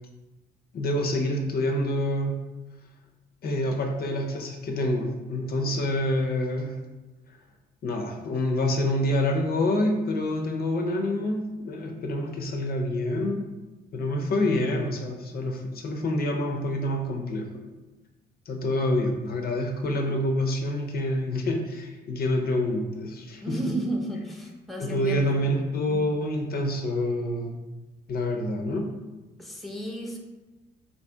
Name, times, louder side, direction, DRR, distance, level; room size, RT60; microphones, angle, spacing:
voice 1, 0.7-2.5 3.4-6.8 7.8-13.5 13.9-17.7 18.5-23.8 24.8-27.6 28.1-29.0, left 1 dB, 50° left, 2 dB, 0.5 m, -27 dB
voice 2, 23.4-25.4 29.4-30.2, right 1 dB, ahead, 0 dB, 0.5 m, -32 dB
2.7 x 2.7 x 3.3 m, 1.2 s
cardioid pair, 90°, 20 cm